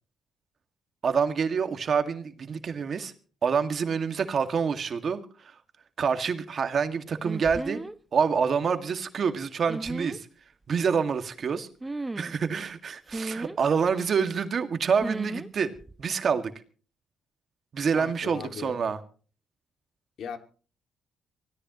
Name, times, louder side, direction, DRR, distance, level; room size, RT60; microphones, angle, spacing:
voice 1, 1.0-3.1 3.4-5.2 6.0-7.8 8.1-10.3 10.7-11.7 12.2-15.7 16.0-16.5 17.7-19.0, right 6 dB, 50° right, 2.0 m, -27 dB
sound 1, 7.2-8.0 9.7-10.2 11.8-12.4 13.1-13.6 15.0-15.5 15.7-16.0, right 2 dB, 15° right, 0.8 m, -35 dB
voice 2, 17.9-18.8 20.2-20.4, left 7 dB, 65° left, 2.2 m, -38 dB
24.5 x 17.0 x 3.1 m
cardioid pair, 90°, 0 cm